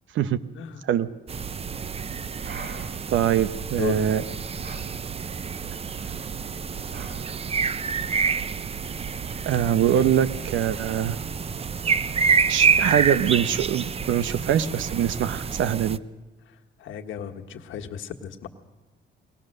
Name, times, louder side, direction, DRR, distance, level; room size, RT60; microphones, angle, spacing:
sound 1, 1.3-16.0, right 6 dB, 30° right, 0.6 m, -28 dB
sound 2, 2.4-3.1 4.6-4.9 5.9-6.3 6.9-7.4 8.0-8.4, right 4 dB, 55° right, 1.9 m, -43 dB
voice 1, 3.1-4.2 9.5-11.2 12.5-16.0, right 10 dB, 75° right, 14 dB, 0.9 m, -23 dB
voice 2, 3.8-4.1 16.5-18.5, left 9 dB, 80° left, 3 dB, 1.5 m, -35 dB
22.5 x 18.5 x 6.6 m, 1.1 s
cardioid pair, 90°, 20 cm